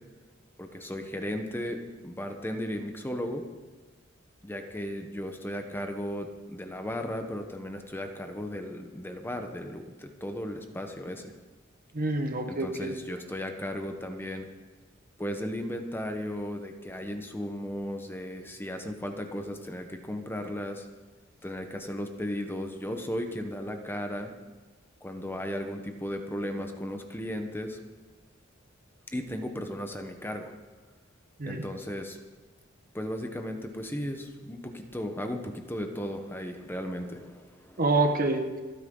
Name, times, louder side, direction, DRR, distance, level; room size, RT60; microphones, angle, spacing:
voice 1, 0.6-3.4 4.4-11.3 12.5-14.5 15.2-20.9 21.4-24.3 25.0-27.8 29.1-30.5 31.4-32.2 32.9-37.8, equal, 10° left, 5 dB, 1.1 m, -35 dB
voice 2, 11.9-12.9 31.4-31.6 37.8-38.6, right 2 dB, 45° right, 5 dB, 1.4 m, -27 dB
29.0 x 9.9 x 3.9 m, 1.3 s
head